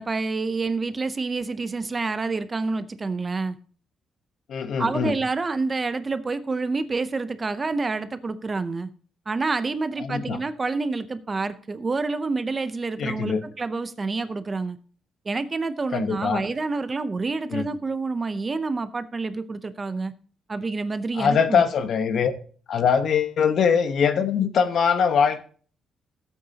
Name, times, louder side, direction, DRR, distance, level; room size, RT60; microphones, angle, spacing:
voice 1, 0.0-3.6 4.8-8.9 9.3-14.8 15.3-20.1 20.5-21.6, right 3 dB, 20° right, 0.6 m, -28 dB
voice 2, 4.5-5.1 10.0-10.4 13.0-13.4 15.9-16.4 17.5-17.6 21.1-22.3 22.7-25.4, left 6 dB, 55° left, 1.1 m, -22 dB
16.0 x 8.6 x 2.8 m
cardioid pair, 155°, 0 cm